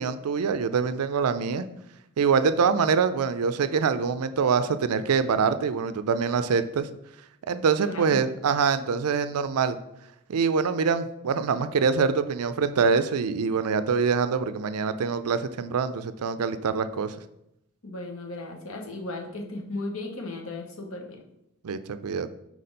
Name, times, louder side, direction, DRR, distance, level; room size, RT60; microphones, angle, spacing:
voice 1, 0.0-1.7 2.2-6.9 7.5-9.8 10.3-17.1 21.6-22.3, right 5 dB, 80° right, 12 dB, 0.4 m, -25 dB
voice 2, 7.8-8.2 17.8-21.2, left 2 dB, 65° left, 2 dB, 1.0 m, -36 dB
4.7 x 4.2 x 5.2 m, 0.81 s
head